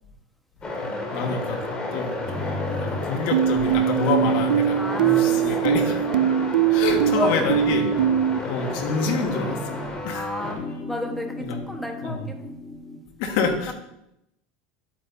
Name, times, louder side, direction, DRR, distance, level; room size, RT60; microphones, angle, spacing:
sound 1, 0.6-10.5, left 2 dB, 20° left, 2.4 m, -32 dB
voice 1, 0.8-6.0 6.7-7.9 8.4-9.8 10.0-10.3 11.4-11.6 12.0-12.2 13.2-13.7, left 5 dB, 70° left, 4 dB, 1.7 m, -27 dB
sound 2, 2.2-3.2 3.5-6.6 6.9-10.1 10.4-13.1, left 2 dB, 35° left, 1.8 m, -36 dB
sound 3, 3.3-8.4, right 11 dB, 90° right, 0.4 m, -21 dB
voice 2, 4.8-6.2 6.7-7.9 10.1-10.6 10.9-12.5 13.7-13.8, equal, 5° left, 3 dB, 1.4 m, -32 dB
11.0 x 8.7 x 2.8 m, 0.84 s
supercardioid pair, 115°, 4 cm